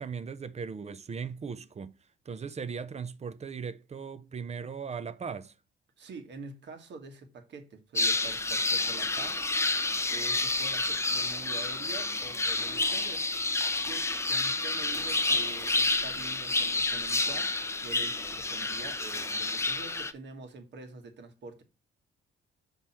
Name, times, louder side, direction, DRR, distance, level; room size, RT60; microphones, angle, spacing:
voice 1, 0.0-1.9 2.3-5.5, right 6 dB, 35° right, 0.7 m, -38 dB
voice 2, 6.0-9.4 10.1-13.3 13.7-17.5 17.8-21.6, right 4 dB, 65° right, 1.7 m, -46 dB
sound 1, 8.0-20.1, left 2 dB, 15° left, 0.6 m, -29 dB
6.2 x 5.4 x 4.3 m
cardioid pair, 90°, 20 cm